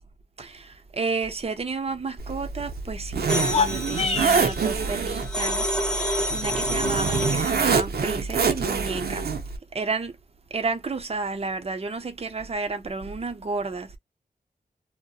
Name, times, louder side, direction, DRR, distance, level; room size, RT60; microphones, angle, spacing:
voice 1, 0.4-9.2 9.7-10.1 10.5-14.0, right 4 dB, 40° right, 0.6 m, -31 dB
Zipper (clothing), 2.2-9.6, right 5 dB, 90° right, 0.6 m, -26 dB
sound 1, 3.3-7.8, equal, 5° left, 0.8 m, -29 dB
sound 2, 3.4-4.6, left 5 dB, 40° left, 0.5 m, -26 dB
2.6 x 2.0 x 2.3 m
wide cardioid pair, 115°, 16 cm